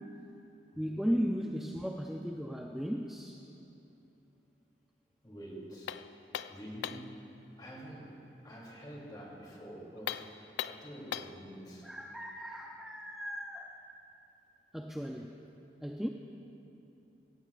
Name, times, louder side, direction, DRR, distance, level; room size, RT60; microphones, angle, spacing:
voice 1, 0.8-3.5 11.8-13.9 14.7-15.4 15.8-16.1, equal, ahead, 1 dB, 0.4 m, -36 dB
voice 2, 5.2-5.9 6.5-7.3 7.6-8.0 8.4-11.9, equal, 25° left, -4 dB, 2.9 m, -47 dB
sound 1, 5.9-7.2 10.0-11.4, left 9 dB, 85° left, 0.3 m, -39 dB
17.0 x 17.0 x 2.5 m, 2.9 s
head